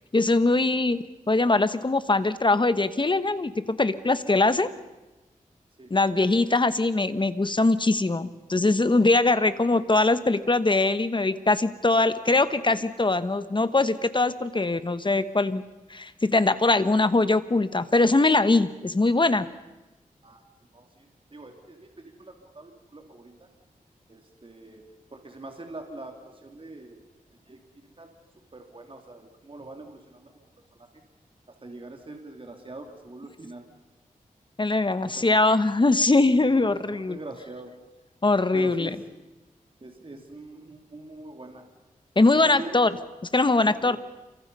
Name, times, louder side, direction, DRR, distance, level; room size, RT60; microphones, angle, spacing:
voice 1, 0.1-4.7 5.9-15.6 15.9-19.5 34.6-37.2 38.2-38.9 42.2-42.9 43.3-44.0, left 2 dB, 35° left, 12 dB, 1.2 m, -22 dB
voice 2, 5.8-6.2 20.2-20.4 20.7-23.5 24.1-24.8 25.1-27.0 27.5-28.1 28.5-30.5 30.7-30.9 31.6-33.7 35.1-35.4 36.4-37.7 38.5-38.9 39.8-41.6 42.3-42.8 43.8-44.0, right 2 dB, 40° right, 3 dB, 3.1 m, -43 dB
28.5 x 24.5 x 5.6 m, 1.1 s
wide cardioid pair, 70°, 15 cm